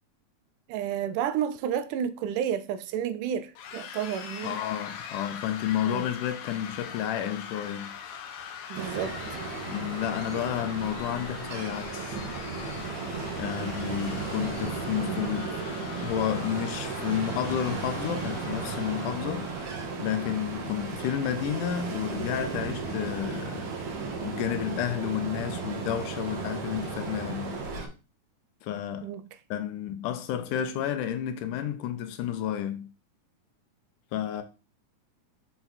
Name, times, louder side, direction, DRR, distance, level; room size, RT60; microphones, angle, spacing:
voice 1, 0.7-4.6 5.9-6.1 8.7-9.2 10.3-10.5 29.0-29.2, right 9 dB, 80° right, 2.1 m, -31 dB
sound 1, 3.6-19.9, left 8 dB, 70° left, 2.0 m, -42 dB
voice 2, 4.4-7.9 9.7-12.2 13.3-15.6 15.9-19.5 19.9-23.7 24.2-27.6 28.6-29.1 29.5-32.9 34.1-34.4, left 10 dB, 90° left, 2.3 m, -31 dB
Ocean, 8.7-27.9, right 4 dB, 65° right, 2.3 m, -35 dB
6.9 x 4.2 x 4.1 m
omnidirectional pair, 3.6 m